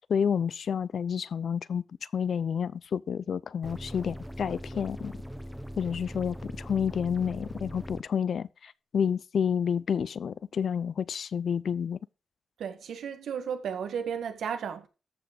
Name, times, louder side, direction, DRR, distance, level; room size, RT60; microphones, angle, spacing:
voice 1, 0.1-1.8 2.1-5.1 5.8-12.0, left 7 dB, 60° left, 0.5 m, -29 dB
sound 1, 3.6-8.0, equal, 5° right, 0.8 m, -40 dB
voice 2, 12.6-14.9, right 7 dB, 85° right, 1.7 m, -34 dB
14.0 x 6.2 x 5.2 m
wide cardioid pair, 120°, 0 cm